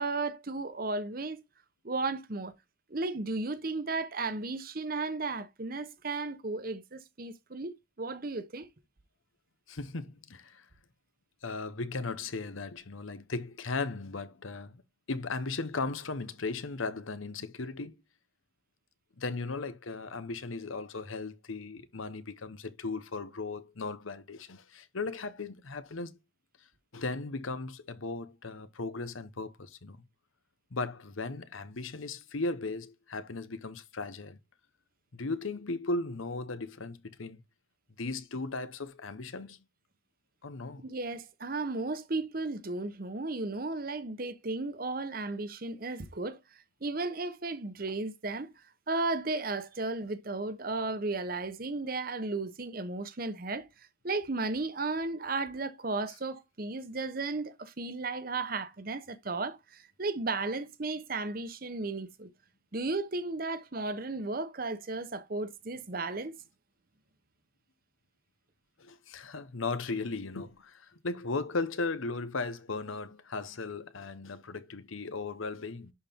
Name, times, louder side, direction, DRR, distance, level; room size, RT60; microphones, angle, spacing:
voice 1, 0.0-1.4 1.8-2.5 2.9-8.7 40.8-46.4 46.8-48.5 48.9-53.7 54.0-62.3 62.7-66.3, right 3 dB, 45° right, 0.9 m, -34 dB
voice 2, 9.7-10.6 11.4-14.8 15.1-18.0 19.2-26.1 26.9-30.0 30.7-34.4 35.1-37.4 38.0-39.6 40.4-40.9 68.8-75.9, left 3 dB, 85° left, 0.9 m, -37 dB
11.0 x 4.3 x 3.6 m
head